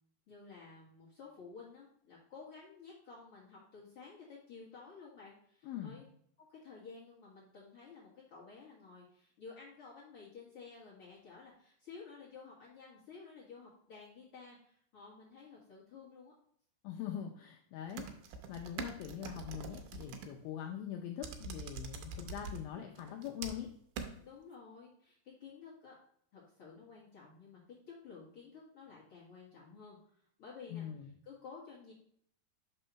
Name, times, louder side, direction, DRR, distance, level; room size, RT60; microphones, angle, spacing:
voice 1, 0.3-6.0 6.4-16.3 22.1-22.4 24.2-25.9 26.3-27.6 28.0-30.0 30.4-30.9 31.2-31.9, left 5 dB, 65° left, -6 dB, 1.4 m, -53 dB
voice 2, 5.6-6.0 16.8-18.1 18.5-23.7 30.7-31.1, left 10 dB, 80° left, 1 dB, 2.2 m, -42 dB
sound 1, 17.9-20.3 21.2-22.6 23.0-23.7 24.0-24.1, right 5 dB, 80° right, 2.0 m, -43 dB
5.4 x 4.0 x 5.6 m, 0.66 s
omnidirectional pair, 4.7 m